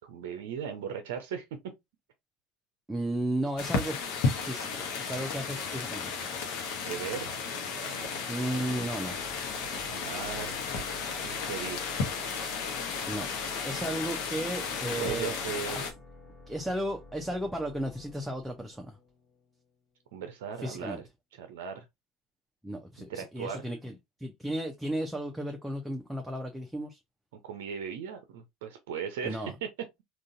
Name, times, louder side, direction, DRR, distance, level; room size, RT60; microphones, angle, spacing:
voice 1, 0.0-1.6 4.3-4.6 6.8-7.3 7.6-8.1 9.9-11.9 13.0-13.2 15.0-15.9 20.1-21.1 21.3-21.8 23.0-23.7 27.4-29.7, right 7 dB, 70° right, 0.6 m, -38 dB
voice 2, 2.9-4.2 4.5-6.1 8.3-9.2 13.1-13.3 13.6-15.4 15.7-15.9 16.5-19.0 20.6-21.0 22.6-23.9 24.2-27.0 29.2-29.5, right 1 dB, 5° right, 0.6 m, -34 dB
sound 1, 3.6-15.9, left 5 dB, 60° left, 0.9 m, -34 dB
sound 2, 8.4-19.9, left 2 dB, 35° left, 1.2 m, -52 dB
3.8 x 2.4 x 2.5 m
figure-of-eight pair, 70°, 0 cm